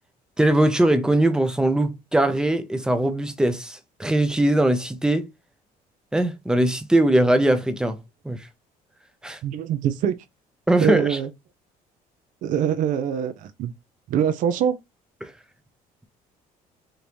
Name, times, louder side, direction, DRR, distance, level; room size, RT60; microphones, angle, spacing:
voice 1, 0.4-5.2 6.1-8.0 8.2-8.5 9.2-9.4 10.7-11.2 15.2-15.3, right 1 dB, 5° right, 0.6 m, -21 dB
voice 2, 9.4-10.1 10.8-11.3 12.4-13.7 14.1-14.7, right 9 dB, 60° right, 0.5 m, -23 dB
5.1 x 2.7 x 3.0 m
cardioid pair, 155°, 15 cm